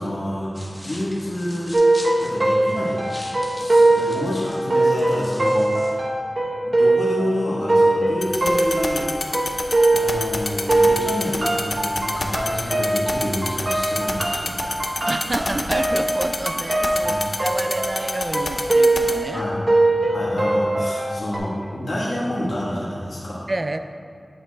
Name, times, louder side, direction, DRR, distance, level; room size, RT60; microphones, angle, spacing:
voice 1, 0.0-1.8 2.2-3.1 3.6-6.1 6.6-9.1 9.9-14.7 17.0-17.2 19.3-19.6 20.1-23.4, left 1 dB, 85° left, -8 dB, 1.3 m, -28 dB
sound 1, 0.5-5.9, equal, 15° left, 1.2 m, -41 dB
sound 2, 1.7-10.4 10.7-21.4, right 2 dB, 60° right, 0.9 m, -21 dB
sound 3, 8.2-19.1, left 3 dB, 65° left, 0.6 m, -26 dB
voice 2, 15.1-19.5 20.7-20.9 23.5-23.8, right 2 dB, 40° right, 9 dB, 0.3 m, -29 dB
8.4 x 7.4 x 2.2 m, 2.3 s
wide cardioid pair, 75°, 0 cm